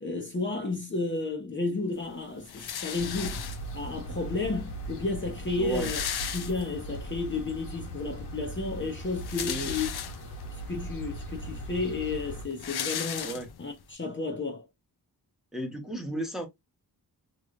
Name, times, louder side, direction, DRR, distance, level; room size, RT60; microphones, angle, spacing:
voice 1, 0.0-3.4 3.7-6.0 6.3-9.9 10.7-13.3 13.6-14.6, left 3 dB, 30° left, 0.8 m, -32 dB
sound 1, 2.5-3.9 4.8-4.9 5.1-5.2 5.4-7.0 7.4-7.5 8.9-10.5 11.1-11.2 11.5-13.8, left 9 dB, 70° left, 0.6 m, -36 dB
sound 2, 3.0-12.5, right 1 dB, 85° left, 1.4 m, -39 dB
voice 2, 5.6-5.9 9.4-9.7 13.2-13.5 15.5-16.5, right 1 dB, ahead, 1.0 m, -34 dB
3.1 x 3.1 x 2.5 m
wide cardioid pair, 110°, 40 cm